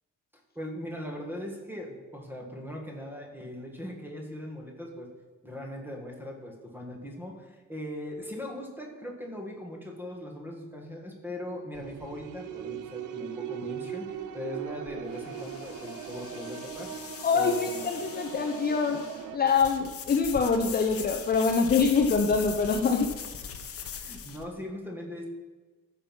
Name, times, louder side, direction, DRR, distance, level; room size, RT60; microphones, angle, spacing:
voice 1, 0.6-5.1 5.4-17.9 23.9-25.3, left 1 dB, 5° right, 1 dB, 1.8 m, -40 dB
sound 1, 11.7-19.4, right 9 dB, 65° right, 0.7 m, -39 dB
sound 2, 14.1-24.4, left 7 dB, 45° left, 1.0 m, -41 dB
voice 2, 17.2-19.0 19.3-23.1, left 5 dB, 30° left, 4 dB, 0.6 m, -25 dB
14.0 x 6.1 x 5.6 m, 1.3 s
cardioid pair, 160°, 32 cm